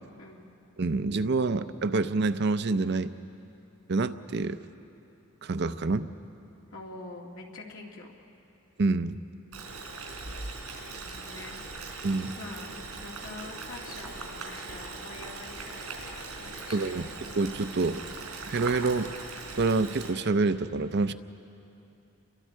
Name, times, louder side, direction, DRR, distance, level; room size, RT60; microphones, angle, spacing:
voice 1, 0.2-0.5 6.7-8.1 10.9-11.6 12.4-17.1, left 2 dB, 70° left, -1 dB, 2.6 m, -45 dB
voice 2, 0.8-3.1 3.9-4.6 5.4-6.1 8.8-9.2 12.0-12.3 16.7-17.1 17.3-18.0 18.4-19.1 19.6-21.1, right 3 dB, 50° right, 11 dB, 0.6 m, -27 dB
Boiling, 9.5-20.1, right 3 dB, 80° right, 4.3 m, -40 dB
29.5 x 23.0 x 4.6 m, 2.8 s
head